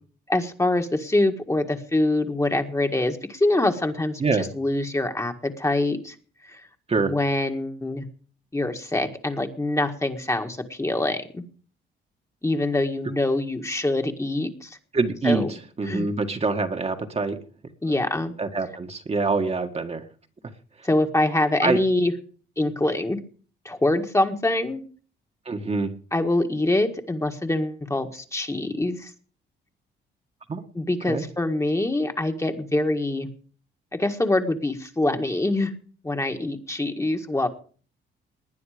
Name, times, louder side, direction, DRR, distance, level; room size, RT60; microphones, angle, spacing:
voice 1, 0.3-6.2 6.4-6.6 7.0-8.1 8.5-11.4 12.4-14.8 15.2-15.5 15.9-16.1 17.8-18.3 20.8-22.1 22.6-23.2 23.7-24.8 26.1-29.1 30.8-33.3 33.9-35.7 36.0-37.5, left 2 dB, 15° left, 5 dB, 1.7 m, -24 dB
voice 2, 14.9-15.4 15.8-17.4 18.4-20.0 21.6-21.8 25.5-25.9 30.5-30.6 31.1-31.2, right 4 dB, 30° right, 4 dB, 1.7 m, -25 dB
19.5 x 9.5 x 5.1 m, 0.42 s
cardioid pair, 90°, 20 cm